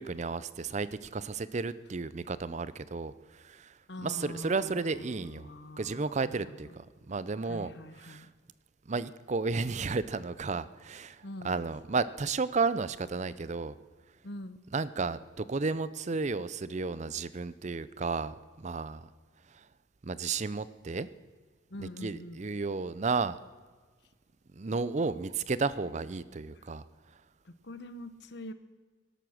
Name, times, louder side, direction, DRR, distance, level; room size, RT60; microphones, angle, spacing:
voice 1, 0.0-3.7 4.0-5.5 5.8-8.3 8.9-13.8 14.7-19.1 19.5-19.7 20.0-21.1 21.8-23.4 24.5-26.8, right 4 dB, 35° right, 16 dB, 0.5 m, -33 dB
voice 2, 3.9-6.5 7.4-8.3 11.2-11.6 14.2-14.6 21.7-22.4 27.6-28.5, left 1 dB, 60° left, 11 dB, 1.0 m, -44 dB
18.0 x 12.0 x 6.4 m, 1.4 s
head